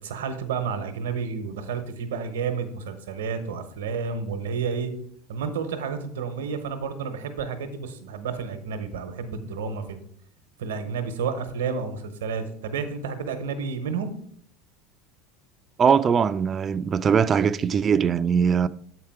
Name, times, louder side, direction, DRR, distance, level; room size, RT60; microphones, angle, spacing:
voice 1, 0.0-4.9 5.3-10.0 10.6-14.1, right 5 dB, 90° right, 0.9 m, -30 dB
voice 2, 15.8-18.7, right 7 dB, 30° right, 0.3 m, -21 dB
7.3 x 4.8 x 4.7 m
supercardioid pair, 105°, 0 cm